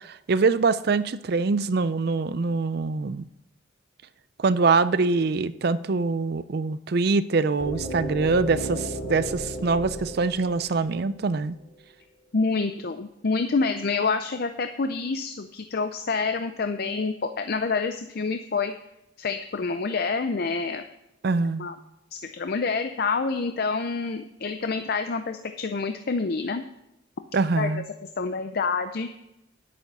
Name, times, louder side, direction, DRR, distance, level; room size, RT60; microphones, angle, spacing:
voice 1, 0.3-3.2 4.4-11.6 21.2-21.7 27.3-27.8, right 4 dB, 55° right, 15 dB, 0.5 m, -24 dB
sound 1, 7.6-11.5, equal, 85° left, 2.5 m, -34 dB
voice 2, 12.3-18.7 19.2-20.8 21.6-21.8 22.1-26.6 27.6-27.7 28.2-29.1, left 4 dB, 50° left, 8 dB, 0.5 m, -27 dB
10.5 x 8.5 x 5.5 m, 0.88 s
head